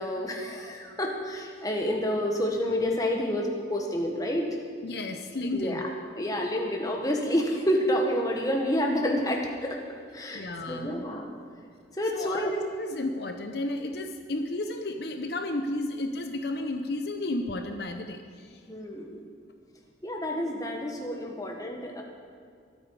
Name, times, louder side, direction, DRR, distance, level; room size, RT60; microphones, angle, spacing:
voice 1, 0.0-4.5 5.5-5.8 6.2-9.8 10.1-11.3 11.9-12.6 18.7-19.2 20.0-22.0, equal, 20° left, 1 dB, 1.6 m, -29 dB
voice 2, 4.8-5.9 10.3-11.0 12.1-18.6, left 2 dB, 65° left, 6 dB, 0.8 m, -33 dB
23.0 x 8.7 x 4.9 m, 2.3 s
head